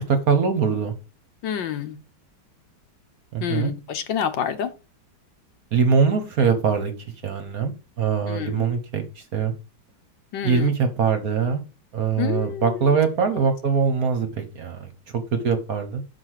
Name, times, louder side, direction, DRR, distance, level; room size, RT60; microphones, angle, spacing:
voice 1, 0.1-0.9 3.3-3.7 5.7-6.9 7.2-9.5 10.4-11.6 11.9-16.0, right 6 dB, 50° right, 1.3 m, -22 dB
voice 2, 1.4-2.0 3.4-4.7 8.3-8.7 10.3-10.7 12.2-13.0 13.3-13.4, left 9 dB, 70° left, 1.5 m, -28 dB
6.0 x 4.9 x 6.4 m
omnidirectional pair, 2.2 m